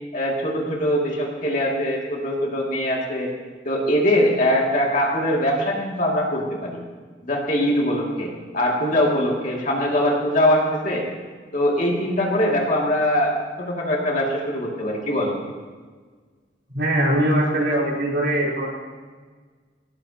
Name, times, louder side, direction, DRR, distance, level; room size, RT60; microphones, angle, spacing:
voice 1, 0.1-3.3 3.6-6.8 7.2-11.1 11.5-15.4, equal, 45° left, -2 dB, 2.5 m, -22 dB
voice 2, 16.7-18.7, right 1 dB, 65° right, -5 dB, 3.9 m, -21 dB
18.0 x 15.5 x 2.9 m, 1.5 s
head